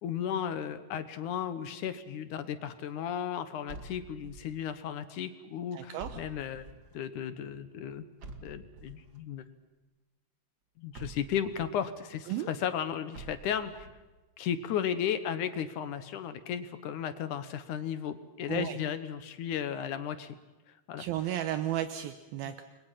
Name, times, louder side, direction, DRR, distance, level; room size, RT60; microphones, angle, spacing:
voice 1, 0.0-6.7 6.9-8.0 8.4-9.4 10.8-13.9 14.4-20.4 20.9-21.1 22.5-22.6, left 9 dB, 65° left, 11 dB, 2.3 m, -35 dB
sound 1, 3.7-4.6 6.0-6.9 8.2-9.2 10.9-11.8 13.1-14.0, right 3 dB, 45° right, 1.4 m, -47 dB
voice 2, 5.7-6.2 12.3-12.5 18.5-18.8 21.0-22.6, right 12 dB, 75° right, 9 dB, 2.7 m, -34 dB
30.0 x 23.5 x 5.8 m, 1.1 s
omnidirectional pair, 4.5 m